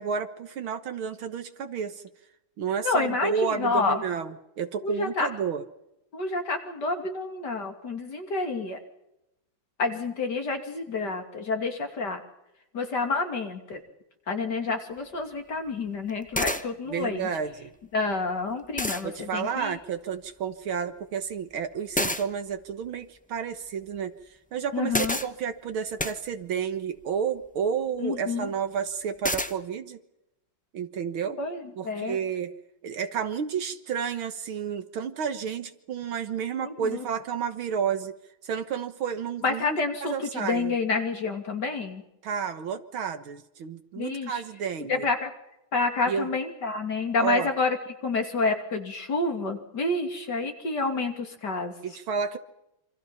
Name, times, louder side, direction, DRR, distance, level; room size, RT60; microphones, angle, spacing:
voice 1, 0.0-2.0 2.6-5.6 16.9-17.7 19.0-24.1 24.5-30.0 30.7-31.4 31.8-32.5 32.8-38.1 38.4-40.7 42.2-45.1 46.1-46.3 47.2-47.5 51.8-52.4, right 7 dB, 75° right, 8 dB, 2.1 m, -31 dB
voice 2, 2.8-4.0 4.8-5.3 6.1-8.8 9.8-12.2 12.7-13.8 14.3-17.3 17.9-19.8 24.7-25.2 28.0-28.5 31.4-32.2 36.6-37.0 39.4-42.0 44.0-44.4 44.9-45.3 45.7-47.8 48.0-51.7, left 3 dB, 50° left, 5 dB, 3.3 m, -28 dB
sound 1, 15.0-15.1 16.1-16.2 16.3-16.6 18.2-18.3 18.8-19.0 21.9-22.2 24.9-25.3 26.0-26.2 29.2-29.5, left 1 dB, 10° left, 0.3 m, -27 dB
27.5 x 26.0 x 5.8 m, 0.86 s
omnidirectional pair, 2.3 m